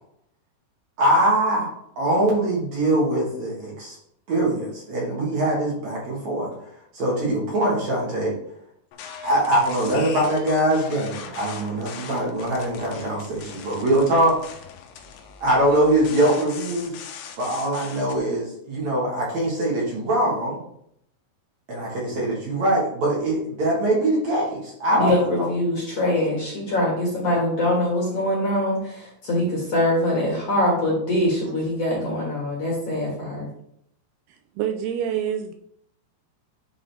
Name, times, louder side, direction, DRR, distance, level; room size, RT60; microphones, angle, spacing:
voice 1, 1.0-1.7 2.0-3.9 4.3-6.5 6.9-8.3 9.2-14.4 15.4-16.9 17.4-20.6 21.7-25.1 25.4-25.5, right 1 dB, 55° right, -4 dB, 2.4 m, -22 dB
sound 1, 8.9-18.2, left 7 dB, 90° left, 3.0 m, -40 dB
voice 2, 24.9-33.5, left 1 dB, 50° left, -4 dB, 2.3 m, -23 dB
voice 3, 34.3-35.5, right 9 dB, 80° right, 6 dB, 2.4 m, -27 dB
10.0 x 3.8 x 3.4 m, 0.71 s
omnidirectional pair, 4.7 m